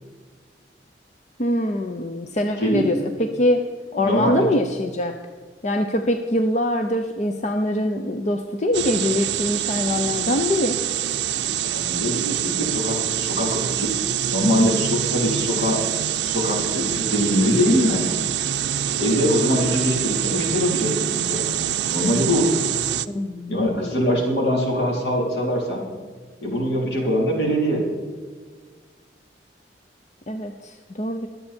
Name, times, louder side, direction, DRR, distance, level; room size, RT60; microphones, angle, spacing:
voice 1, 1.4-3.6 3.9-5.1 5.6-10.8 23.1-24.0 30.3-31.3, left 1 dB, 40° left, 6 dB, 0.7 m, -23 dB
voice 2, 2.6-2.9 4.0-4.5 11.5-14.0 14.3-15.8 16.2-18.1 19.0-21.5 21.9-22.5 23.5-25.8 26.4-27.9, equal, 75° left, -1 dB, 3.9 m, -23 dB
sound 1, 8.7-23.1, right 10 dB, 80° right, 0.5 m, -25 dB
23.0 x 8.3 x 4.4 m, 1.5 s
head